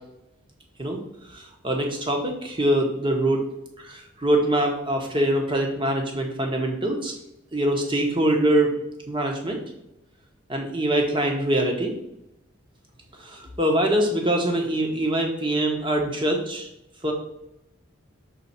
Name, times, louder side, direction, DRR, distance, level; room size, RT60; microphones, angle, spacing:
voice 1, 1.3-3.4 3.8-7.1 7.5-8.7 9.1-9.6 10.5-11.9 13.2-16.7 17.0-17.1, right 1 dB, 25° right, 2 dB, 1.1 m, -23 dB
5.8 x 3.8 x 5.6 m, 0.85 s
head